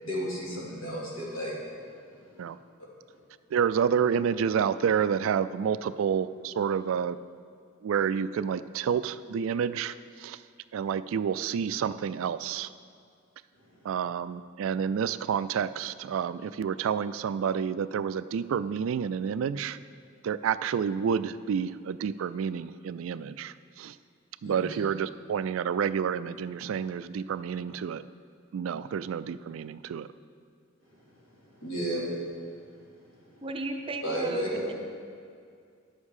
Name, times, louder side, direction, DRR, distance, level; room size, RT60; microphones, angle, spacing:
voice 1, 0.0-1.5 24.4-24.7 31.4-32.0 34.0-34.6, equal, 80° left, -5 dB, 2.8 m, -33 dB
voice 2, 3.5-7.2 7.8-10.4 10.7-12.7 13.8-19.8 20.2-24.0 24.4-28.0 28.5-30.1, right 7 dB, 70° right, 14 dB, 0.3 m, -29 dB
voice 3, 33.4-34.7, right 2 dB, 25° right, 5 dB, 0.6 m, -34 dB
11.0 x 7.3 x 4.9 m, 2.3 s
head